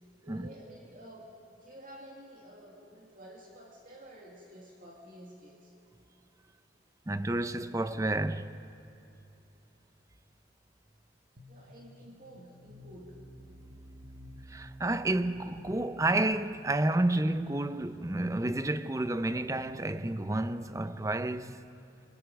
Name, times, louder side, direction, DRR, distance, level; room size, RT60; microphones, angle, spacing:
voice 1, 0.2-5.7 11.5-13.3, right 1 dB, 50° right, 2.2 m, -51 dB
voice 2, 7.1-8.5 14.5-21.6, right 2 dB, 20° right, 0.6 m, -30 dB
sound 1, 11.4-21.5, left 1 dB, 65° right, 1.7 m, -52 dB
26.5 x 22.5 x 5.2 m
head